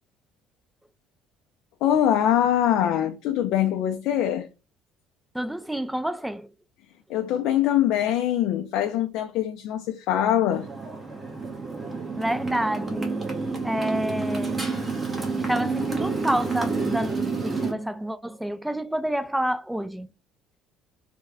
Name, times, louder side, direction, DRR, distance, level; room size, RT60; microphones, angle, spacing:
voice 1, 1.8-4.5 7.1-10.7, left 11 dB, 75° left, 0.4 m, -23 dB
voice 2, 5.3-6.5 12.2-13.4 13.6-14.7 15.4-20.1, right 1 dB, 5° right, 0.3 m, -28 dB
Motorcycle, 10.5-17.7, right 4 dB, 20° right, 1.1 m, -29 dB
3.3 x 2.1 x 3.4 m
cardioid pair, 100°, 0 cm